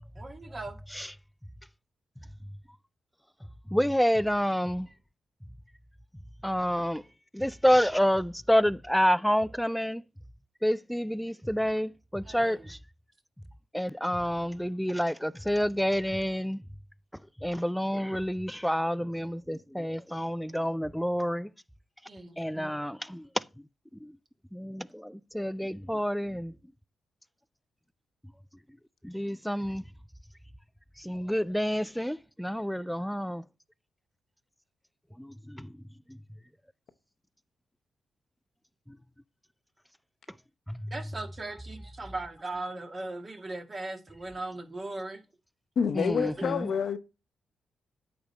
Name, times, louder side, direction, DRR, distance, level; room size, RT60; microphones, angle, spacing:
voice 1, 0.1-0.8 12.2-12.7 22.0-22.7 40.9-45.2, right 2 dB, 40° right, 1.6 m, -39 dB
voice 2, 3.7-4.9 6.4-7.0 7.3-10.0 10.6-12.8 13.7-16.6 17.4-21.5 22.4-23.4 24.0-24.1 24.5-26.6 29.0-29.8 31.0-33.4 35.2-35.7 36.1-36.2 38.9-39.0 40.7-40.9 45.9-46.7, equal, ahead, 0.3 m, -28 dB
voice 3, 45.8-47.0, left 6 dB, 65° left, 0.7 m, -28 dB
8.7 x 3.5 x 4.1 m
supercardioid pair, 55°, 0 cm